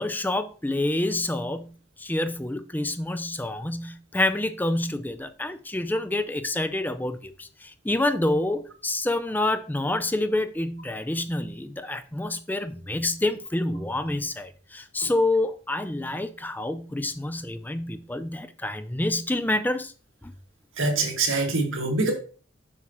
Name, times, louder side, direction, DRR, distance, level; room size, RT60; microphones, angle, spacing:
voice 1, 0.0-1.7 2.0-19.9 20.2-20.3, left 1 dB, 10° left, 0.4 m, -27 dB
voice 2, 20.8-22.1, right 3 dB, 85° right, 2.0 m, -24 dB
7.2 x 6.2 x 3.0 m
head